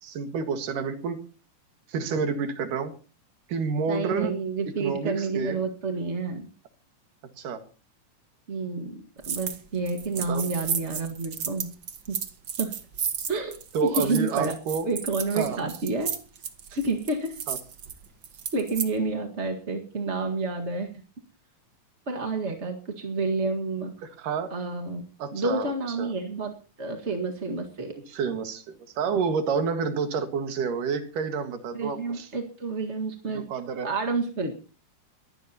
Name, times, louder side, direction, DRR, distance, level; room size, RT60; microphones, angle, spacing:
voice 1, 0.0-1.2 1.9-2.9 3.5-4.4 4.8-5.6 7.4-7.6 10.3-10.5 13.7-14.9 15.4-15.6 17.5-17.6 24.2-24.5 25.2-25.7 26.0-26.1 28.1-32.3 33.3-33.9, right 5 dB, 75° right, 7 dB, 3.3 m, -29 dB
voice 2, 3.9-6.5 8.5-11.7 12.1-12.2 12.6-12.7 13.3-14.5 14.8-16.1 16.7-17.4 18.5-20.9 22.1-24.1 24.5-25.0 25.3-28.0 31.7-33.5 33.8-34.7, right 3 dB, 35° right, 3 dB, 1.2 m, -29 dB
sound 1, 9.2-9.6 9.9-18.9, right 7 dB, 50° right, 1.4 m, -33 dB
22.5 x 15.0 x 2.9 m, 0.36 s
omnidirectional pair, 3.8 m